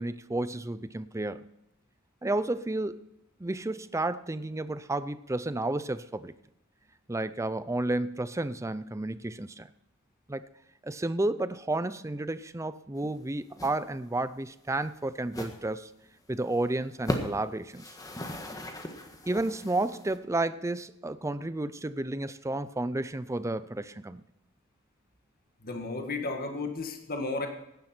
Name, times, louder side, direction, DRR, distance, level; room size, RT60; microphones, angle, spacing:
voice 1, 0.0-1.5 2.2-3.0 3.4-6.3 7.1-9.7 10.3-10.4 10.8-15.9 16.3-17.9 19.3-24.2, right 2 dB, 15° right, 14 dB, 0.5 m, -31 dB
sound 1, 13.0-13.2 13.5-13.8 14.0-14.2 14.7-14.8 15.3-15.6 16.0-16.1 16.4-16.6 16.9-17.4 17.7-20.2, equal, 15° left, 1.5 m, -37 dB
voice 2, 25.6-27.5, left 3 dB, 45° left, 3 dB, 1.8 m, -33 dB
16.5 x 10.5 x 4.5 m, 0.85 s
head